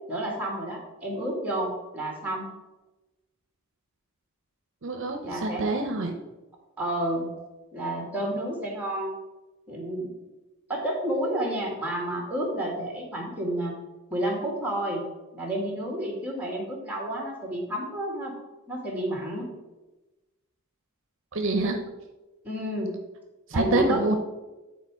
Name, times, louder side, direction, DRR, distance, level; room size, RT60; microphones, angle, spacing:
voice 1, 0.1-2.5 5.2-5.6 6.8-7.3 7.7-9.1 9.7-10.1 10.7-13.7 14.1-15.0 15.3-18.3 18.7-19.5 22.4-22.9 23.5-24.2, right 1 dB, 5° right, -1 dB, 1.9 m, -30 dB
voice 2, 4.8-6.1 21.3-21.8 23.5-24.2, right 2 dB, 60° right, 5 dB, 0.7 m, -26 dB
9.3 x 4.3 x 4.7 m, 1.1 s
head